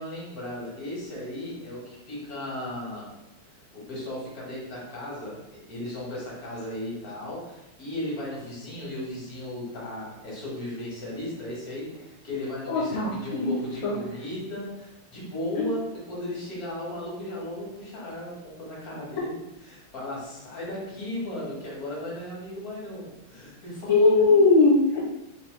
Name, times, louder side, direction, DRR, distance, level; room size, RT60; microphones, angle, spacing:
voice 1, 0.0-3.1 3.7-24.4, left 1 dB, 45° left, -5 dB, 1.7 m, -35 dB
voice 2, 12.7-13.5 13.8-14.0 15.6-15.7 23.9-25.0, left 3 dB, 75° left, -6 dB, 1.6 m, -20 dB
3.9 x 2.9 x 3.1 m, 0.91 s
omnidirectional pair, 2.4 m